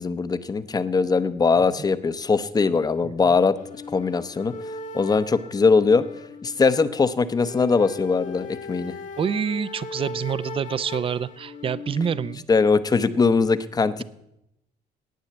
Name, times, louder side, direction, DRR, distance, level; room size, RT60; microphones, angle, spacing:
voice 1, 0.0-3.5 3.9-4.5 4.9-6.0 6.4-8.9 12.5-14.0, left 4 dB, 20° left, 13 dB, 0.7 m, -21 dB
sound 1, 3.6-12.4, left 3 dB, 45° left, 1.2 m, -38 dB
voice 2, 9.2-12.4, right 7 dB, 30° right, 17 dB, 0.5 m, -27 dB
10.5 x 9.0 x 7.9 m, 0.82 s
cardioid pair, 110°, 17 cm